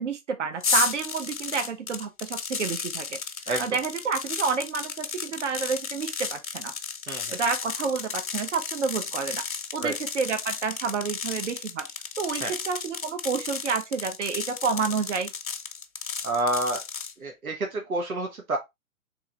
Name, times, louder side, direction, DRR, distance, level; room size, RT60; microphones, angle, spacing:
voice 1, 0.0-3.2 3.6-6.7 7.3-9.4 9.7-11.9 12.2-15.3, right 5 dB, 55° right, 1.1 m, -29 dB
sound 1, 0.6-17.1, left 6 dB, 70° left, 0.9 m, -33 dB
voice 2, 7.1-7.4 9.8-9.9 12.4-12.5 16.2-16.8 17.2-18.6, right 2 dB, 80° right, 1.1 m, -28 dB
3.7 x 3.1 x 3.3 m
figure-of-eight pair, 125°, 42 cm